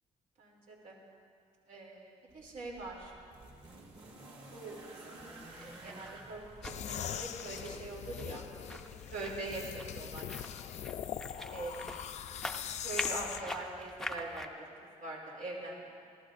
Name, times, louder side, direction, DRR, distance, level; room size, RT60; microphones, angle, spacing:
voice 1, 0.4-1.0 1.7-3.1 4.5-5.2 5.5-8.8 9.1-10.3 11.5-11.8 12.8-14.5 15.0-15.9, right 2 dB, 85° right, -3 dB, 2.8 m, -43 dB
sound 1, 2.3-7.5 8.6-8.7, right 2 dB, 45° right, 2.0 m, -52 dB
sound 2, 5.2-14.5, left 1 dB, 5° left, 0.5 m, -45 dB
sound 3, 6.6-13.4, left 9 dB, 60° left, 0.4 m, -41 dB
27.0 x 13.5 x 2.5 m, 2.3 s
wide cardioid pair, 175°, 13 cm